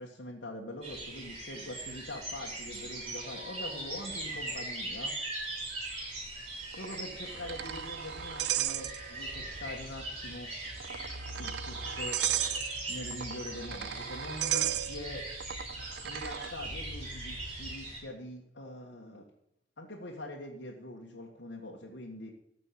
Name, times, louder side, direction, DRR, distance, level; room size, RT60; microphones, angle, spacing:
voice 1, 0.0-5.1 6.8-10.5 11.4-12.2 12.9-15.3 16.0-19.3 19.8-22.3, left 1 dB, 85° left, -2 dB, 1.8 m, -43 dB
sound 1, 0.8-18.0, right 2 dB, 35° right, 5.9 m, -40 dB
sound 2, 6.7-9.4 9.7-9.8 10.7-16.5, right 12 dB, 65° right, 0.4 m, -36 dB
14.0 x 6.1 x 8.6 m, 0.80 s
head